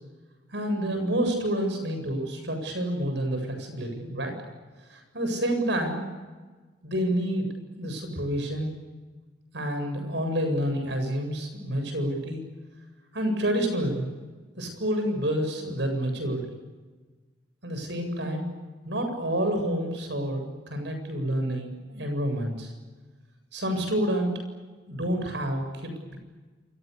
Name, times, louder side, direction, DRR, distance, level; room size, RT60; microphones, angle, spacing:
voice 1, 0.5-4.3 4.9-6.0 6.8-7.5 7.8-8.8 9.5-12.4 13.1-14.1 14.6-16.4 17.6-18.5 18.8-22.7 23.5-24.3 24.9-26.2, equal, 70° right, 5 dB, 7.9 m, -28 dB
29.0 x 28.0 x 6.9 m, 1.3 s
head